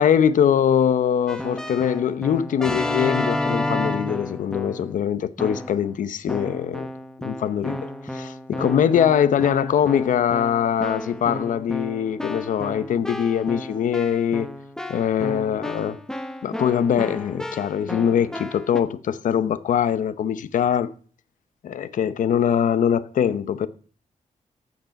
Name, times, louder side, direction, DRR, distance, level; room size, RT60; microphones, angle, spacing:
voice 1, 0.0-6.9 7.2-7.9 8.1-14.5 14.9-16.0 16.4-20.9 21.6-23.7, left 8 dB, 90° left, 0.8 m, -22 dB
Keyboard (musical), 1.3-4.9 5.4-5.9 6.3-18.8, left 1 dB, 5° left, 1.1 m, -31 dB
14.5 x 6.6 x 5.8 m
wide cardioid pair, 135°, 13 cm